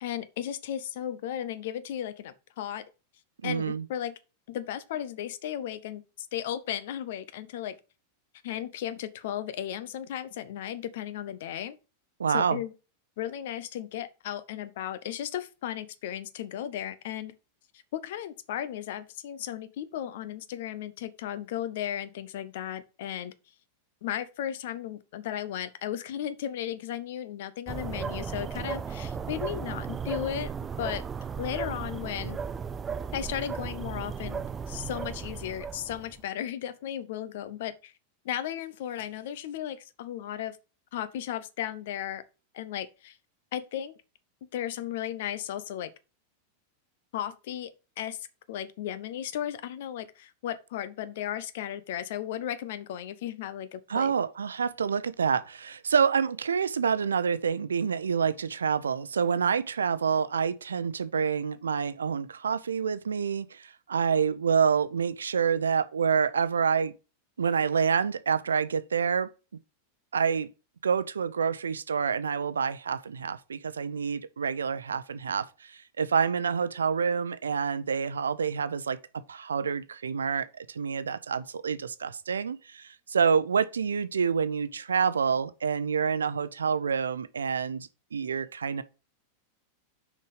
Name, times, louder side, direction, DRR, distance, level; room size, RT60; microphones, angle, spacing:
voice 1, 0.0-2.8 3.4-4.2 4.5-7.7 8.4-11.8 12.3-12.7 13.2-17.3 17.9-23.3 24.0-30.5 30.8-31.0 31.4-32.4 33.1-37.9 38.2-40.6 40.9-42.2 42.5-43.2 43.5-43.9 44.4-45.9 47.1-47.7 48.0-54.1, left 11 dB, 55° left, 0.8 m, -35 dB
voice 2, 3.4-3.8 12.2-12.6 53.9-66.9 67.4-69.3 70.1-70.5 70.8-79.0 79.3-88.8, right 6 dB, 70° right, 0.6 m, -27 dB
sound 1, 27.7-36.2, right 6 dB, 20° right, 0.4 m, -35 dB
6.6 x 5.3 x 4.9 m
figure-of-eight pair, 90°, 0 cm